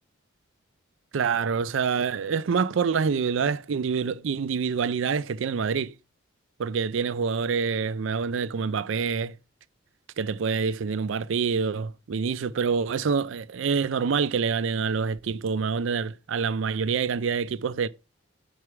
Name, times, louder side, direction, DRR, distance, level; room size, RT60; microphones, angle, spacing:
voice 1, 1.1-5.9 6.6-9.4 10.2-17.9, right 5 dB, 65° right, 0.4 m, -26 dB
6.3 x 3.5 x 5.9 m
head